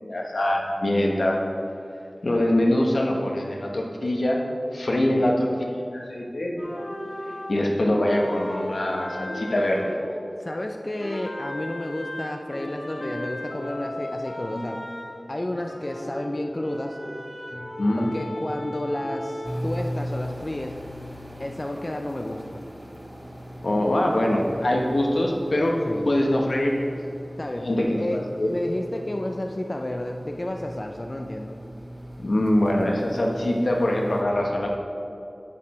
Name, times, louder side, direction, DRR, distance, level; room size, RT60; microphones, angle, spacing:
voice 1, 0.0-1.4 2.2-4.4 4.7-6.5 7.5-9.9 17.8-18.1 23.6-25.7 26.0-26.9 27.6-28.5 32.2-34.8, left 1 dB, 80° left, 0 dB, 1.2 m, -23 dB
sound 1, 6.6-10.7 11.0-19.6, left 1 dB, 60° left, 1.3 m, -36 dB
voice 2, 10.4-14.8 15.3-17.0 17.9-20.8 21.4-22.6 25.9-26.1 27.4-27.7 28.0-31.6, left 1 dB, 35° left, 3 dB, 0.5 m, -31 dB
sound 2, 19.4-34.2, equal, 10° right, 1.0 m, -38 dB
10.0 x 6.7 x 4.3 m, 2.6 s
wide cardioid pair, 60°, 0 cm